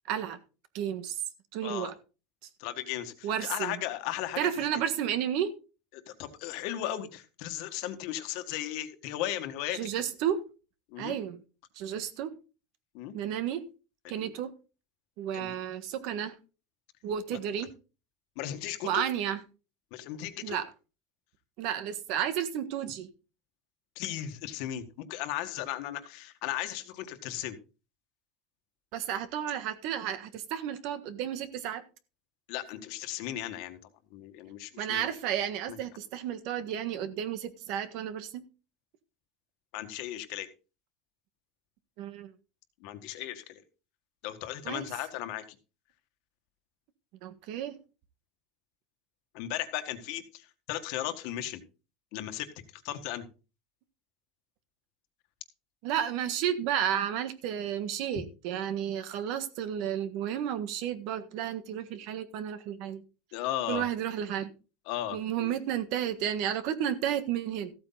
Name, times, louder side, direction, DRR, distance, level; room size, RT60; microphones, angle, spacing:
voice 1, 0.1-0.4 0.7-1.2 1.5-1.9 3.2-3.8 4.4-5.5 9.7-10.4 11.0-11.4 11.7-12.3 13.1-13.7 14.1-14.5 15.2-16.4 17.0-17.7 18.8-19.4 20.4-20.7 21.6-23.1 28.9-31.8 34.8-38.5 42.0-42.3 44.6-44.9 47.2-47.8 55.8-63.0 63.7-64.5 65.1-67.7, right 10 dB, 55° right, 1.5 m, -32 dB
voice 2, 2.6-4.4 5.9-9.8 10.9-11.2 12.9-13.1 14.2-14.3 15.3-15.6 17.3-17.4 18.4-19.0 19.9-20.6 24.0-27.6 32.5-33.8 34.1-35.1 35.7-35.8 39.7-40.5 42.8-43.6 44.2-45.4 49.3-51.6 52.1-53.3 63.3-63.9 64.9-65.5, left 12 dB, 55° left, 1.7 m, -36 dB
14.5 x 8.6 x 4.0 m
supercardioid pair, 165°, 0 cm